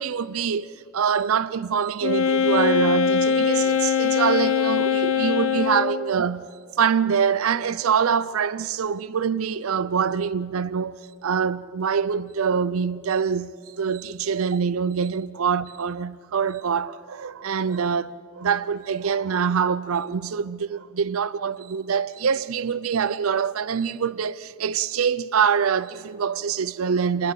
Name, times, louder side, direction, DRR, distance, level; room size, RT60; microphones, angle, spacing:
voice 1, 0.0-27.3, right 6 dB, 85° right, 0.5 m, -25 dB
Wind instrument woodwind instrument, 2.0-6.1, left 6 dB, 65° left, 1.2 m, -22 dB
28.0 x 21.5 x 5.7 m
head